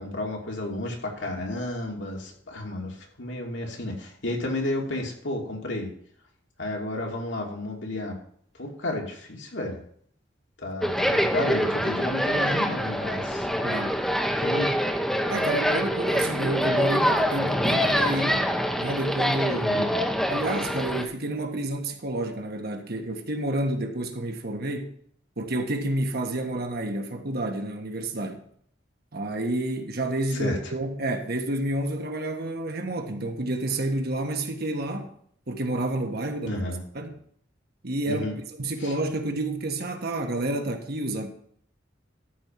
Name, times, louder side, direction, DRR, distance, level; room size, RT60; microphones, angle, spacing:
voice 1, 0.0-5.9 6.6-8.2 8.6-9.8 10.6-13.5 14.4-14.7 19.5-19.9 30.3-30.7 36.4-36.8 38.1-38.4 38.8-38.9, left 1 dB, 70° left, 2.7 m, -32 dB
sound 1, 10.8-21.0, equal, ahead, 1.0 m, -25 dB
voice 2, 13.6-14.0 15.3-18.5 18.8-19.7 20.3-24.9 25.4-28.4 29.1-35.1 35.5-36.6 36.9-37.1 37.8-41.3, right 1 dB, 55° right, 1.5 m, -29 dB
13.0 x 4.5 x 7.4 m
head